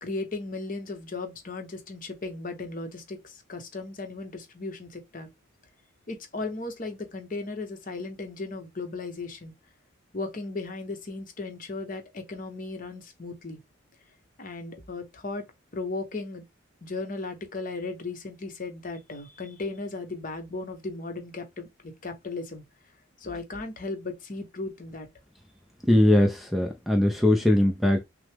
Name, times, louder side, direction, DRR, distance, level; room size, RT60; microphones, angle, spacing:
voice 1, 0.0-5.3 6.1-9.5 10.1-13.6 14.4-15.5 15.7-16.4 16.8-22.6 23.2-25.1, left 3 dB, 40° left, 0.9 m, -36 dB
voice 2, 25.9-28.0, left 1 dB, ahead, 0.4 m, -21 dB
6.0 x 2.0 x 3.4 m
head